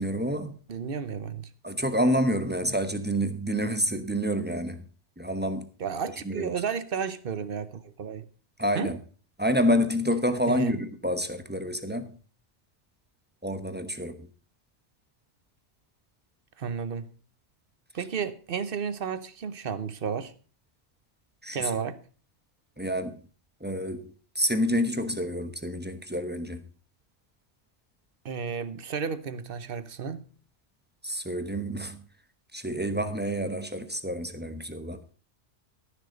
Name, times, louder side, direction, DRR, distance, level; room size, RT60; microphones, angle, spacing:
voice 1, 0.0-0.6 1.6-4.8 5.2-5.7 6.2-6.5 8.6-9.0 9.4-12.2 13.4-14.3 21.4-21.7 22.8-23.2 23.6-26.7 31.0-32.0 32.5-35.0, equal, 10° right, 0.9 m, -28 dB
voice 2, 0.7-1.5 5.8-8.3 8.7-8.9 10.5-10.8 16.6-17.1 17.9-20.3 21.5-22.0 28.2-30.3, right 6 dB, 55° right, 1.0 m, -32 dB
14.5 x 6.7 x 5.2 m
omnidirectional pair, 1.2 m